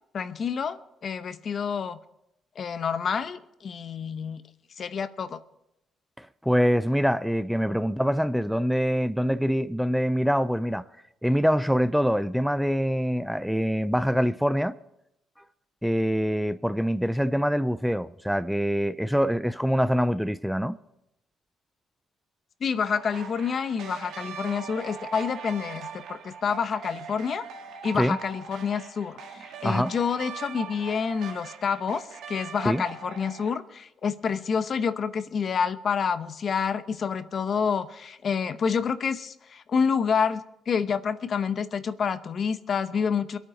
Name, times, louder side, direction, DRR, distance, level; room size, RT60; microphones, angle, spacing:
voice 1, 0.1-2.0 2.6-4.4 4.8-5.4 22.6-27.4 27.8-43.4, left 6 dB, 50° left, 0.8 m, -28 dB
voice 2, 6.2-10.8 11.2-14.8 15.8-20.8 27.9-28.2 29.6-29.9 32.6-32.8, equal, ahead, 0.5 m, -24 dB
sound 1, 22.8-33.6, right 6 dB, 80° right, 1.7 m, -41 dB
22.5 x 9.0 x 5.0 m
cardioid pair, 90°, 0 cm